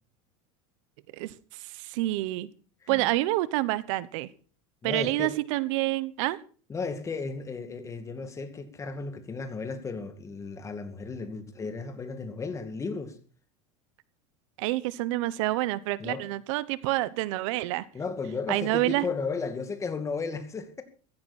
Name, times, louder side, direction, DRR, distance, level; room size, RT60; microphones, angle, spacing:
voice 1, 1.1-2.5 2.9-4.3 4.8-6.4 14.6-17.9 18.5-19.0, right 18 dB, 70° right, 1.1 m, -28 dB
voice 2, 2.8-3.1 4.8-5.4 6.7-13.2 16.0-16.3 17.9-20.8, left 4 dB, 20° left, 2.3 m, -34 dB
15.5 x 15.0 x 4.3 m
supercardioid pair, 145°, 17 cm